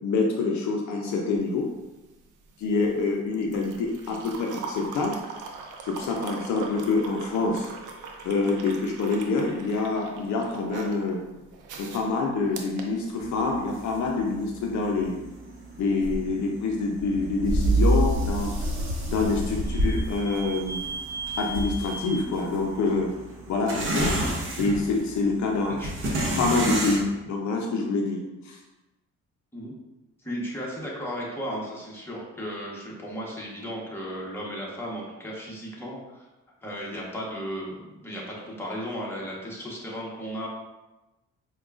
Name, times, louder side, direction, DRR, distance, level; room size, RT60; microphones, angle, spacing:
voice 1, 0.0-1.7 2.6-5.2 5.9-7.7 8.2-11.2 11.8-15.2 15.8-18.5 19.1-20.8 21.4-23.1 23.5-24.1 24.6-25.8 26.4-28.6, left 3 dB, 70° left, 1 dB, 0.5 m, -26 dB
sound 1, 1.3-13.7 14.9-15.1, right 4 dB, 85° right, 0.5 m, -41 dB
sound 2, 13.2-27.0, right 1 dB, 40° right, 0.8 m, -29 dB
Vehicle / Squeak, 18.3-23.9, right 2 dB, 10° right, 0.4 m, -39 dB
voice 2, 30.2-36.3 36.6-40.5, equal, 10° left, -5 dB, 1.0 m, -35 dB
4.7 x 2.2 x 2.4 m, 1.1 s
cardioid pair, 90°, 30 cm